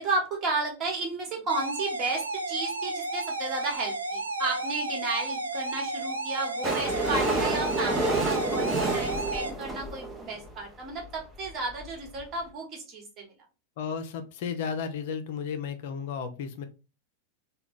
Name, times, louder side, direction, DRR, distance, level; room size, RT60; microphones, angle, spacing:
voice 1, 0.0-13.3, right 3 dB, 30° right, 1 dB, 1.3 m, -33 dB
sound 1, 1.5-9.5, right 2 dB, 80° right, 0.5 m, -33 dB
sound 2, 6.6-10.5 11.2-11.3 11.5-11.6 11.7-11.9 12.2-12.3, right 2 dB, 10° right, 0.7 m, -29 dB
voice 2, 13.8-16.7, left 6 dB, 50° left, 8 dB, 0.4 m, -33 dB
3.4 x 2.2 x 3.5 m, 0.31 s
figure-of-eight pair, 90°, 0 cm